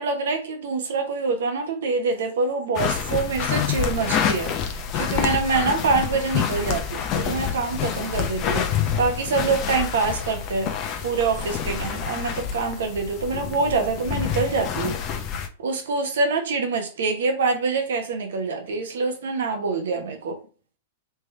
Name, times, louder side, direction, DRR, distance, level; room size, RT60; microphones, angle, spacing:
voice 1, 0.0-10.7 11.0-15.0 15.6-20.4, right 4 dB, 70° right, 4 dB, 1.0 m, -25 dB
sound 1, 2.8-15.5, left 8 dB, 40° left, 0.7 m, -27 dB
3.4 x 3.3 x 3.3 m, 0.36 s
hypercardioid pair, 110°, 0 cm